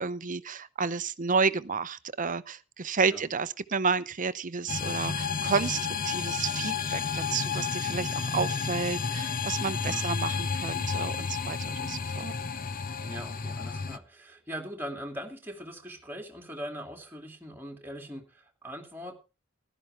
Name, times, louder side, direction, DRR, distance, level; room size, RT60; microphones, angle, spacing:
voice 1, 0.0-12.3, right 5 dB, 40° right, 0.7 m, -31 dB
sound 1, 4.7-14.0, left 5 dB, 45° left, 0.8 m, -31 dB
voice 2, 13.0-19.2, equal, 10° right, 2.5 m, -41 dB
15.5 x 12.0 x 3.4 m
head